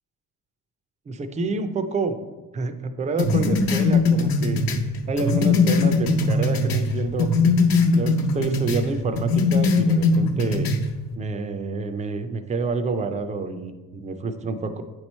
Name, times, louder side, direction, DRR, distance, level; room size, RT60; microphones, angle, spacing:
voice 1, 1.1-2.2 2.5-4.6 5.1-7.3 8.0-10.7 11.2-14.8, right 3 dB, 20° right, 8 dB, 0.4 m, -28 dB
sound 1, 3.2-6.9 7.2-8.8 9.2-10.8, left 3 dB, 65° left, 0.9 m, -20 dB
9.1 x 3.1 x 4.2 m, 1.2 s
cardioid pair, 135°, 38 cm